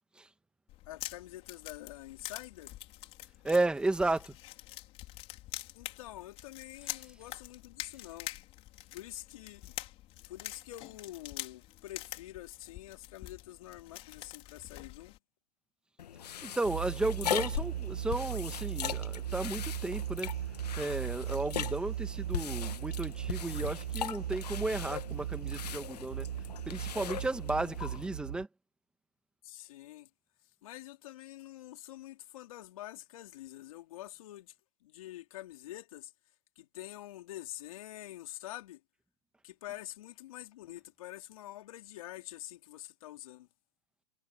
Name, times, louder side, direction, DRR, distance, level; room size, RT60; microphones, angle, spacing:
sound 1, 0.7-15.2, left 16 dB, 30° left, 4.4 m, -46 dB
voice 1, 0.9-2.8 5.7-8.3 8.9-9.8 10.2-15.1 29.4-30.1 30.6-34.5 34.8-36.1 36.6-38.8 39.4-43.5, left 14 dB, 60° left, 4.2 m, -46 dB
voice 2, 3.4-4.4 16.4-20.3 20.8-26.3 26.7-28.5, right 2 dB, 5° right, 1.6 m, -33 dB
sound 2, 16.0-28.1, left 10 dB, 90° left, 1.4 m, -40 dB
sound 3, 16.6-28.5, right 11 dB, 85° right, 0.5 m, -38 dB
hypercardioid pair, 150°, 20 cm